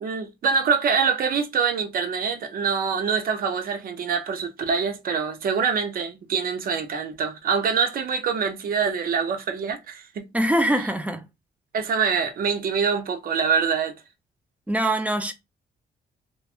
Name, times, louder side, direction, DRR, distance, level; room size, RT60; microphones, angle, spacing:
voice 1, 0.0-10.3 11.7-13.9, right 6 dB, 55° right, 0.6 m, -25 dB
voice 2, 10.3-11.3 14.7-15.3, right 1 dB, 10° right, 0.4 m, -23 dB
3.1 x 2.2 x 2.4 m
cardioid pair, 125°, 18 cm